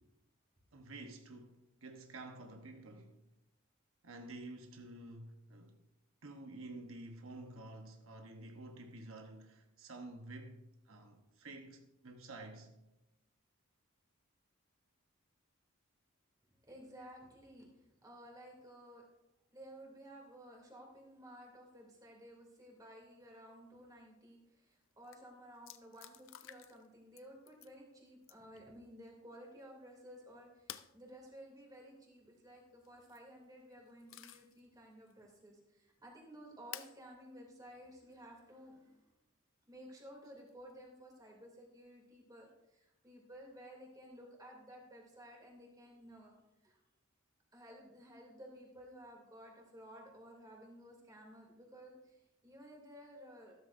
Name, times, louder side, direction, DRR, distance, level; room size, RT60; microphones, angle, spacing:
voice 1, 0.7-3.2 4.0-5.8 6.2-12.7, right 2 dB, 80° right, 1.1 m, -50 dB
voice 2, 16.7-19.0 19.5-39.1 39.6-46.3 46.6-46.8 47.5-53.5, equal, 20° right, 2.8 m, -55 dB
sound 1, 24.7-24.8 25.0-25.2 25.6-26.9 27.2-27.7 28.2-28.6 30.7-30.9 32.8-33.2 33.7-34.6 35.1-35.2 36.7-37.0 38.1-38.2 40.2-40.7, left 12 dB, 70° left, 0.5 m, -51 dB
13.5 x 13.0 x 2.6 m
head